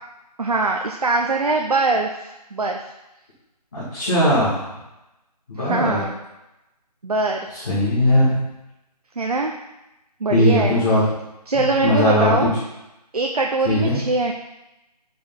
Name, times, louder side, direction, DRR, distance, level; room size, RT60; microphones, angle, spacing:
voice 1, 0.4-2.9 5.6-6.1 7.0-7.5 9.2-9.5 10.2-10.8 11.5-12.5 13.1-14.3, right 3 dB, 65° right, 2 dB, 0.9 m, -22 dB
voice 2, 3.7-4.6 5.5-6.0 7.5-8.4 10.3-11.0 11.5-12.5 13.6-14.0, left 1 dB, 25° left, -12 dB, 2.5 m, -19 dB
9.1 x 5.1 x 4.0 m, 0.94 s
figure-of-eight pair, 180°, 21 cm